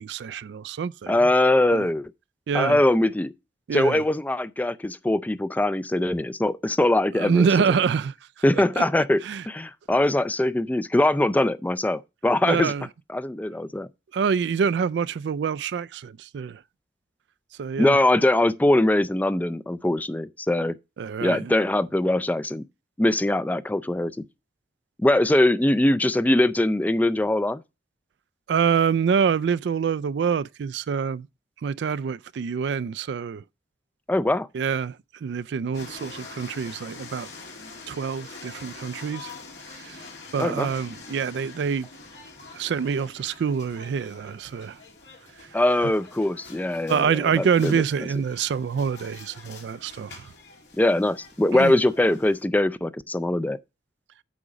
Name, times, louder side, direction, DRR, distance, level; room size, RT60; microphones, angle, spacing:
voice 1, 0.0-1.2 1.7-1.9 2.5-2.8 3.7-4.0 7.1-8.1 8.8-8.9 9.2-9.4 12.4-12.9 14.1-16.6 17.6-18.0 21.0-21.5 28.5-31.3 31.6-33.4 34.5-34.9 35.2-37.3 37.9-39.3 39.9-40.0 40.3-41.9 42.6-44.8 46.9-50.2 51.5-51.7, right 6 dB, 75° right, 0.3 m, -26 dB
voice 2, 1.1-2.1 2.5-3.3 3.7-7.5 8.4-12.7 13.1-13.9 17.8-20.7 21.2-22.6 23.0-24.1 25.0-27.6 34.1-34.5 40.4-40.7 45.5-47.8 50.8-53.6, left 1 dB, 10° left, 0.3 m, -22 dB
sound 1, 35.7-52.4, left 4 dB, 85° left, 2.5 m, -45 dB
8.5 x 5.2 x 4.9 m
head